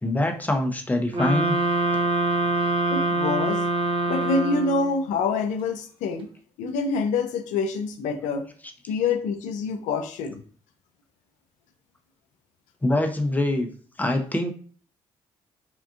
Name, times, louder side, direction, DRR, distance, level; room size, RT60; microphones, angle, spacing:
voice 1, 0.0-1.6 12.8-13.7 14.0-14.5, left 1 dB, 15° left, 4 dB, 0.7 m, -24 dB
sound 1, 1.1-5.0, right 2 dB, 45° right, 0.8 m, -24 dB
voice 2, 2.9-3.6 4.1-6.3 6.6-8.4 8.9-10.4, left 4 dB, 80° left, 7 dB, 0.4 m, -26 dB
3.7 x 2.4 x 2.3 m, 0.43 s
supercardioid pair, 55°, 13 cm